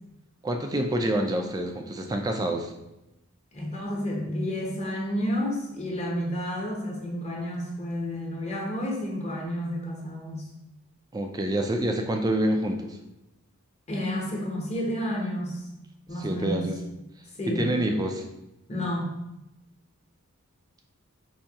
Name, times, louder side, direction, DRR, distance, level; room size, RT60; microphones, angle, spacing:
voice 1, 0.4-2.7 11.1-13.0 16.2-16.7 17.5-18.2, right 1 dB, 15° right, 4 dB, 0.3 m, -27 dB
voice 2, 3.5-10.4 13.9-15.7 16.1-16.7 17.3-17.7 18.7-19.1, equal, 30° left, -2 dB, 0.8 m, -30 dB
4.5 x 2.7 x 2.7 m, 0.91 s
head